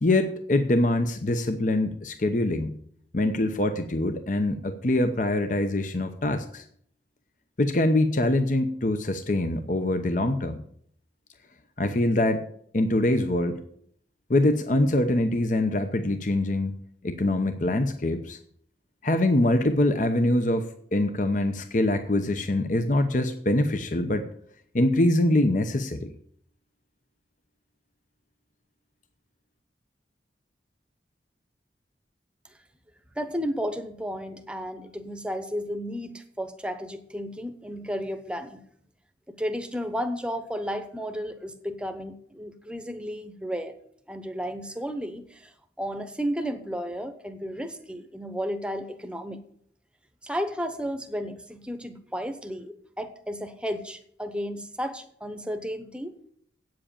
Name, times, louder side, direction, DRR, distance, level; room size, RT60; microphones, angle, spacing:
voice 1, 0.0-2.8 3.1-6.6 7.6-10.6 11.8-12.4 12.7-13.6 14.3-16.8 17.0-18.4 19.0-24.3 24.7-26.1, left 1 dB, 45° left, 8 dB, 0.8 m, -24 dB
voice 2, 33.2-38.6 39.3-43.7 44.1-45.5 45.8-49.4 50.2-56.1, equal, 5° right, 8 dB, 0.9 m, -33 dB
8.7 x 7.7 x 8.7 m, 0.65 s
head